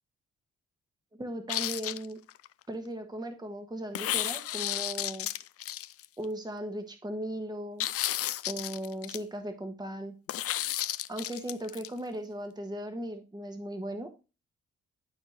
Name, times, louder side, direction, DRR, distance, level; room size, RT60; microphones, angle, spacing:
voice 1, 1.2-2.2 2.7-5.3 6.2-7.9 8.5-10.1 11.1-14.1, right 1 dB, 15° right, 6 dB, 1.4 m, -37 dB
sound 1, 1.5-2.5 3.9-6.2 7.8-9.2 10.3-11.9, left 13 dB, 50° left, 0.5 m, -33 dB
12.0 x 4.4 x 3.1 m, 0.30 s
hypercardioid pair, 45°, 29 cm